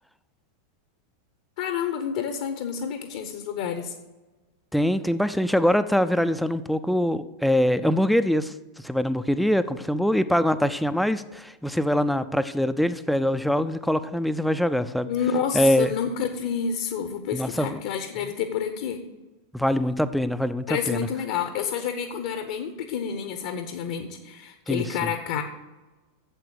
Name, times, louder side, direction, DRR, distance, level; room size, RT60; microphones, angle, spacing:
voice 1, 1.6-3.9 15.0-19.0 20.7-25.4, left 7 dB, 50° left, 8 dB, 0.9 m, -29 dB
voice 2, 4.7-8.5 8.8-15.1 15.5-15.9 17.3-17.8 19.5-21.1 24.7-25.1, equal, ahead, 12 dB, 0.5 m, -23 dB
9.0 x 7.6 x 6.5 m, 1.2 s
figure-of-eight pair, 90°, 0 cm